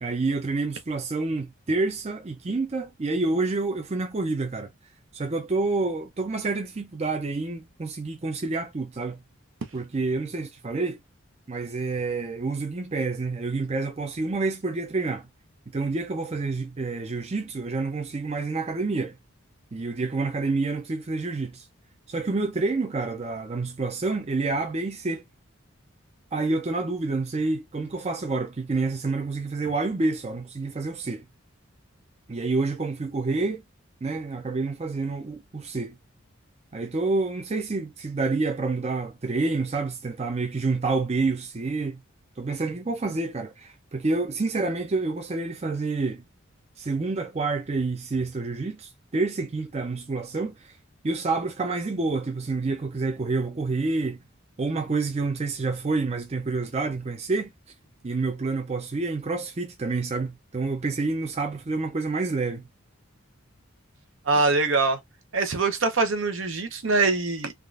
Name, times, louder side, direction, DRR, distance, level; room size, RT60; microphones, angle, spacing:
voice 1, 0.0-4.7 5.1-9.2 9.7-11.0 11.5-15.3 15.7-19.2 19.7-21.7 22.1-25.2 26.3-31.2 32.3-33.6 34.0-36.0 36.7-42.0 42.4-46.2 46.8-50.8 51.0-54.2 54.6-57.5 58.0-62.7 64.3-64.4, right 3 dB, 30° right, 0.5 m, -28 dB
voice 2, 64.3-65.0 65.3-67.5, right 3 dB, 65° right, 0.8 m, -23 dB
3.5 x 2.5 x 2.4 m
head